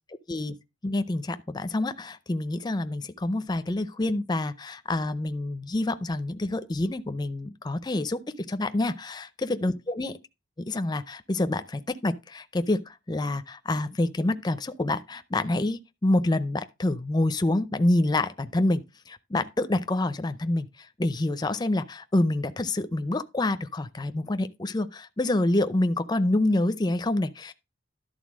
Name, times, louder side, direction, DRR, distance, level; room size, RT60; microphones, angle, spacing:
voice 1, 0.8-8.2 8.5-9.3 9.6-10.2 10.7-27.5, left 2 dB, 20° left, 0.5 m, -27 dB
11.5 x 3.9 x 6.2 m
head